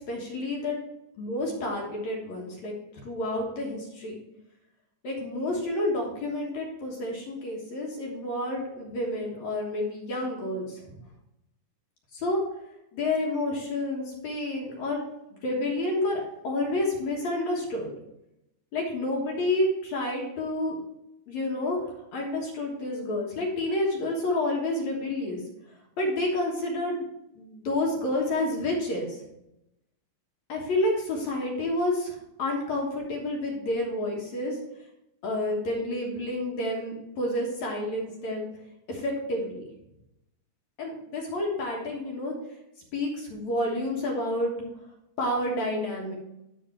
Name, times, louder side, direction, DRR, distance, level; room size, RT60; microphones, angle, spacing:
voice 1, 0.1-0.8 1.2-2.7 3.0-4.1 5.0-11.0 12.1-12.4 12.9-15.0 15.4-17.9 18.7-20.8 21.3-25.4 26.0-27.1 27.4-29.2 30.5-34.6 35.2-38.5 38.9-39.6 40.8-42.3 42.9-44.5 45.2-46.1, left 1 dB, 65° left, -1 dB, 2.7 m, -29 dB
11.5 x 4.2 x 4.4 m, 0.87 s
omnidirectional pair, 3.6 m